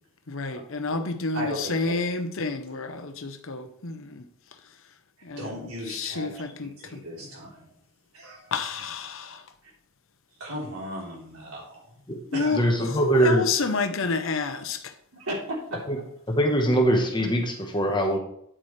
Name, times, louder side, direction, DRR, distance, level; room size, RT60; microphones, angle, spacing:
voice 1, 0.3-4.2 5.2-7.0 8.5-9.4 12.3-14.9, left 4 dB, 65° left, 0.9 m, -30 dB
voice 2, 1.3-1.9 5.4-6.3 6.8-7.7 8.1-8.5 10.4-12.0 12.3-12.6 15.1-16.0, equal, 85° right, 3.8 m, -36 dB
voice 3, 12.5-13.5 15.9-16.0 16.3-18.2, right 1 dB, 20° left, 1.2 m, -22 dB
9.0 x 8.4 x 3.3 m
head